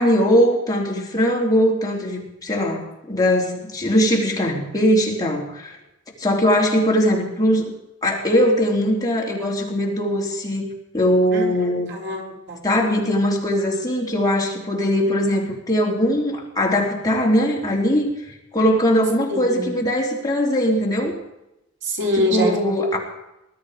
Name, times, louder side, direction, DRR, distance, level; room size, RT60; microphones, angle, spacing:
voice 1, 0.0-5.8 6.2-7.7 8.0-10.7 10.9-11.9 12.6-18.1 18.5-21.2 22.1-23.0, equal, 20° left, -2 dB, 3.4 m, -20 dB
voice 2, 11.9-12.6 19.3-19.8 21.8-22.8, left 1 dB, 60° right, 0 dB, 3.7 m, -24 dB
21.0 x 12.5 x 5.0 m, 0.89 s
head